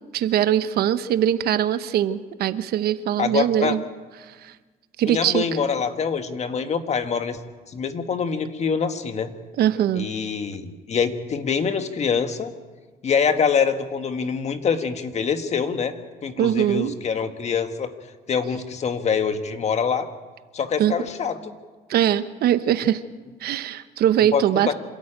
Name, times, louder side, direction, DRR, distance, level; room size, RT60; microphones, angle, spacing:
voice 1, 0.1-3.8 4.2-4.5 5.0-5.5 9.6-10.1 16.4-17.0 20.8-20.9 21.9-23.0 23.4-24.7, right 10 dB, 70° right, 13 dB, 1.0 m, -22 dB
voice 2, 3.2-3.7 5.0-7.4 7.7-9.3 10.0-12.5 13.0-15.9 16.2-17.9 18.3-20.1 20.5-21.5 24.3-24.7, left 6 dB, 40° left, 8 dB, 1.6 m, -25 dB
26.5 x 13.5 x 8.9 m, 1.4 s
cardioid pair, 110°, 17 cm